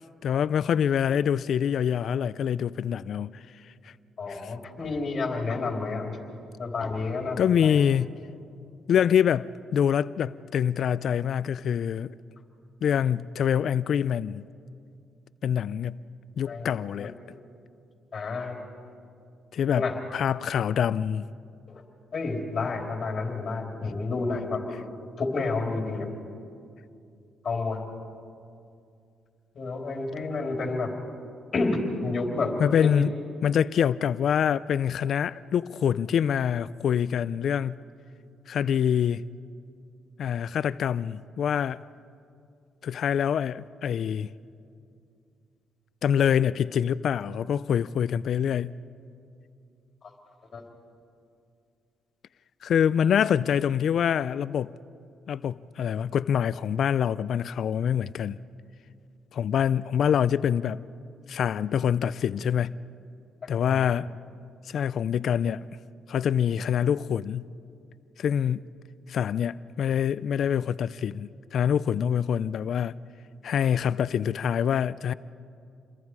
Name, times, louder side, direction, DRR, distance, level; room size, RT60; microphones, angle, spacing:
voice 1, 0.2-3.4 4.3-4.5 7.4-8.1 8.9-12.1 12.8-14.4 15.4-16.0 16.4-17.2 19.5-19.8 20.1-21.3 32.6-33.1 33.4-37.7 38.5-39.2 40.2-41.8 42.8-44.3 46.0-48.8 52.6-54.7 55.3-58.4 59.3-60.8 61.3-62.8 63.5-64.1 64.7-65.7 66.1-67.5 68.2-68.7 69.1-73.0 73.4-75.1, left 8 dB, 65° left, 0.4 m, -25 dB
voice 2, 4.2-6.2 6.6-7.8 16.5-16.7 17.2-17.4 18.1-18.6 19.7-20.0 21.7-21.8 22.1-24.8 25.2-26.1 27.4-27.8 29.5-30.9 31.5-33.0 50.5-50.6 63.7-63.9, left 3 dB, 45° left, 3.8 m, -30 dB
29.0 x 22.0 x 4.8 m
cardioid pair, 90°, 0 cm